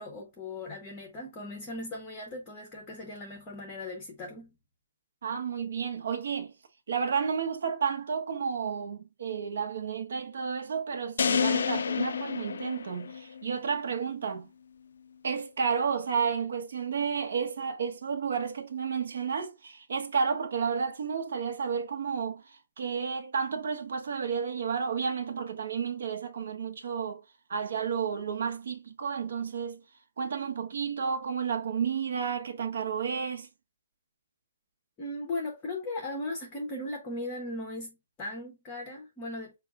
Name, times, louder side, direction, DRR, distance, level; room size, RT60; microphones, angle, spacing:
voice 1, 0.0-4.6 35.0-39.5, left 2 dB, 10° left, 0.7 m, -38 dB
voice 2, 5.2-6.5 6.9-14.5 15.2-27.2 27.5-29.8 30.2-33.5, right 6 dB, 60° right, 0.9 m, -31 dB
sound 1, 11.2-13.5, left 6 dB, 60° left, 0.3 m, -29 dB
4.9 x 2.3 x 3.5 m
hypercardioid pair, 180°, 0 cm